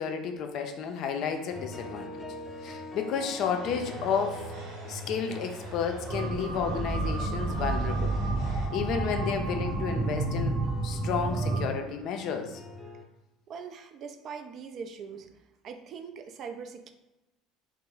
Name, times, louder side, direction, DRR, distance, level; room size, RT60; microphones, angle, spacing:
voice 1, 0.0-2.2 2.6-4.4 4.9-8.1 8.7-12.6, left 7 dB, 60° left, 5 dB, 0.4 m, -32 dB
sound 1, 1.5-13.0, left 1 dB, 10° left, 0.6 m, -44 dB
sound 2, 3.3-8.7, right 1 dB, 65° right, 0.9 m, -47 dB
sound 3, 6.1-11.7, right 3 dB, 30° right, 0.7 m, -30 dB
voice 2, 13.5-16.9, right 6 dB, 50° right, 8 dB, 0.3 m, -42 dB
3.0 x 2.0 x 3.7 m, 0.97 s
hypercardioid pair, 70°, 0 cm